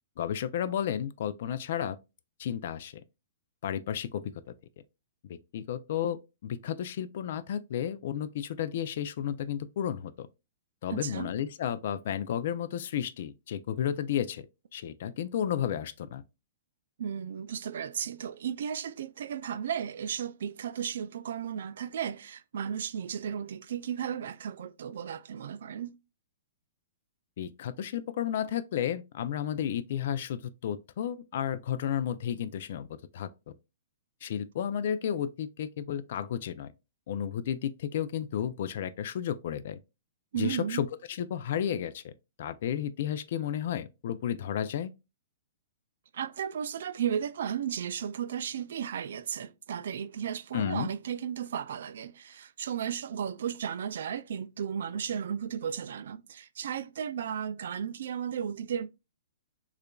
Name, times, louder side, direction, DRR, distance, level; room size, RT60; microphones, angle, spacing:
voice 1, 0.2-2.0 2.4-3.0 3.6-4.3 5.2-10.3 10.8-14.5 14.7-16.2 27.4-32.9 33.1-33.3 34.2-36.7 37.1-39.8 40.4-42.1 42.4-44.9 50.5-50.9, left 9 dB, 50° left, 0.3 m, -32 dB
voice 2, 10.9-11.3 17.0-25.9 40.3-40.8 46.1-58.9, right 8 dB, 65° right, 0.3 m, -34 dB
6.5 x 2.4 x 2.2 m
hypercardioid pair, 165°, 0 cm